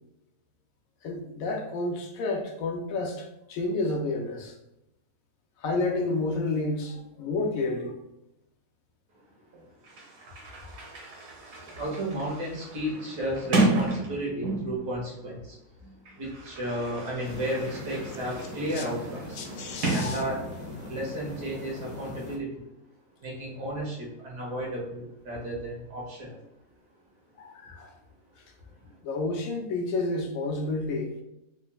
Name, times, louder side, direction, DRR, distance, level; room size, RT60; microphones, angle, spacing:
voice 1, 1.0-4.5 5.6-8.0 18.8-18.9 19.4-20.2 27.4-27.9 29.0-31.1, left 2 dB, 70° left, 3 dB, 0.9 m, -30 dB
Sliding door, 9.5-9.6 9.8-14.9 15.8-20.8, right 2 dB, 60° right, 1.2 m, -32 dB
voice 2, 11.8-15.6 16.2-19.4 19.9-20.4 20.9-22.6 23.2-26.4 28.8-28.9, right 1 dB, 85° right, -4 dB, 1.9 m, -33 dB
sound 1, 17.2-22.4, left 1 dB, 40° left, 0.6 m, -41 dB
4.4 x 3.0 x 2.2 m, 0.88 s
omnidirectional pair, 1.7 m